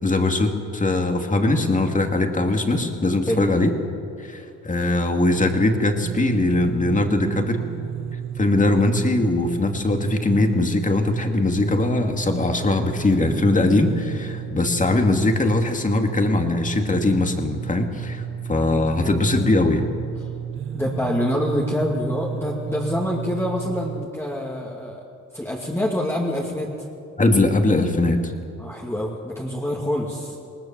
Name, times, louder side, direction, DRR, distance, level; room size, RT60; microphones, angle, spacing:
voice 1, 0.0-3.7 4.2-7.6 8.4-19.9 27.2-28.3, left 2 dB, 25° left, 4 dB, 2.4 m, -21 dB
sound 1, 5.4-24.1, right 10 dB, 45° right, 0.6 m, -33 dB
voice 2, 20.7-25.0 25.3-26.7 28.6-30.4, left 1 dB, 10° left, -3 dB, 2.5 m, -26 dB
20.0 x 19.0 x 7.4 m, 2.5 s
cardioid pair, 90°, 30 cm